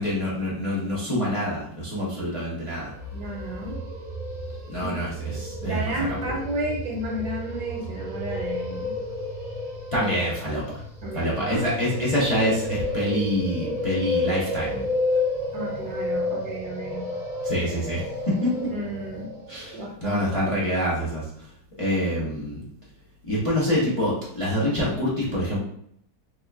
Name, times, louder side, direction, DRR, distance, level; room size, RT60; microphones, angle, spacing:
voice 1, 0.0-2.9 4.7-6.2 9.9-10.8 11.1-14.9 16.9-17.0 17.4-18.7 19.5-21.5 21.8-22.6 23.2-25.6, equal, 50° left, -7 dB, 0.3 m, -26 dB
sound 1, 2.9-19.8, left 1 dB, 40° right, 0.5 m, -31 dB
voice 2, 3.1-3.8 4.8-4.9 5.3-8.9 11.0-11.7 15.5-17.1 18.7-19.3 19.7-20.3, right 1 dB, 65° right, -2 dB, 1.1 m, -32 dB
3.6 x 2.4 x 3.3 m, 0.71 s
omnidirectional pair, 2.1 m